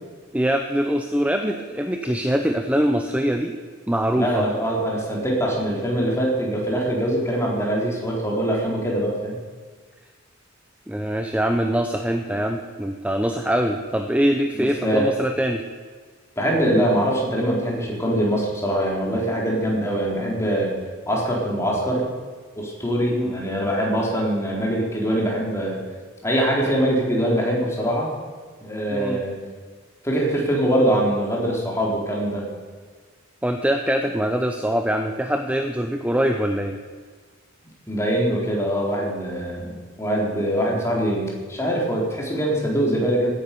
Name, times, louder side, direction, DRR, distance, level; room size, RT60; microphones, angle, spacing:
voice 1, 0.3-3.5 3.9-4.4 10.9-15.6 23.1-23.4 28.9-29.2 33.4-36.8, equal, 5° right, 5 dB, 0.7 m, -23 dB
voice 2, 4.1-9.4 14.5-15.1 16.4-20.7 21.1-22.0 22.6-25.8 26.2-28.1 28.6-29.4 30.0-32.4 37.9-39.7 40.0-43.3, equal, 15° left, -3 dB, 3.9 m, -23 dB
16.5 x 10.5 x 6.9 m, 1.5 s
head